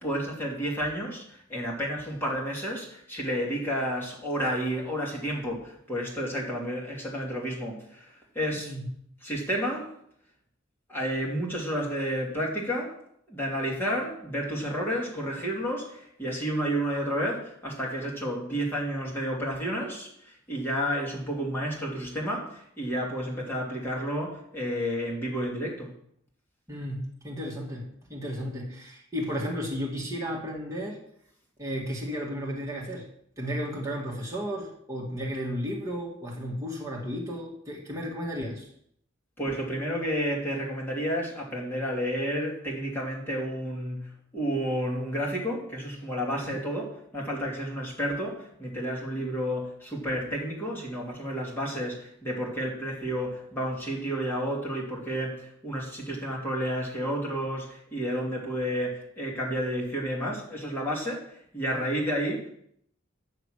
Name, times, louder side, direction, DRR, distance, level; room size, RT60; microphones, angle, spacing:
voice 1, 0.0-8.7 9.2-9.9 10.9-12.9 13.3-25.9 39.4-62.5, equal, 10° left, -4 dB, 2.9 m, -31 dB
voice 2, 8.5-8.8 26.7-31.0 31.6-33.1 33.4-38.7 46.4-46.6, equal, 15° right, -3 dB, 2.2 m, -34 dB
9.7 x 6.8 x 6.5 m, 0.68 s
head